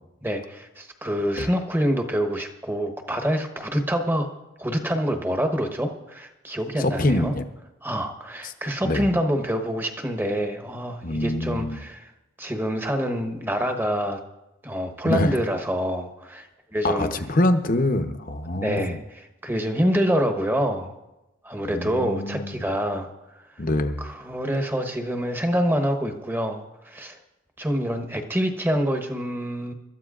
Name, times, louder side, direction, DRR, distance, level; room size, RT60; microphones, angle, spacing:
voice 1, 0.2-4.3 4.6-7.3 7.8-12.1 12.4-14.2 14.6-17.1 18.5-20.9 21.4-23.5 24.0-27.2 27.6-29.7, equal, 10° right, 4 dB, 1.0 m, -26 dB
voice 2, 6.8-7.5 8.4-8.5 8.8-9.1 11.0-11.8 15.0-15.3 16.8-19.0 21.7-22.6 23.6-24.1, left 1 dB, 40° left, 8 dB, 0.8 m, -25 dB
25.0 x 13.0 x 2.5 m, 0.97 s
head